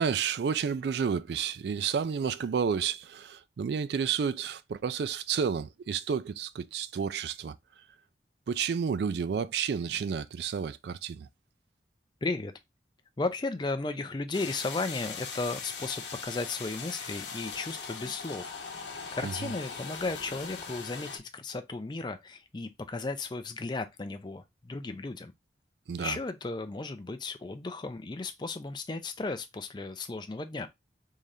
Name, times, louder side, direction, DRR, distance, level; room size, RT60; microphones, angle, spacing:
voice 1, 0.0-7.6 8.5-11.3 19.2-19.3 25.9-26.2, right 6 dB, 65° right, 0.3 m, -31 dB
voice 2, 12.2-12.5 13.2-18.5 19.1-25.3 26.0-30.7, left 3 dB, 25° left, 0.4 m, -35 dB
sound 1, 14.3-21.2, left 5 dB, 80° left, 0.9 m, -40 dB
3.7 x 3.3 x 2.7 m
head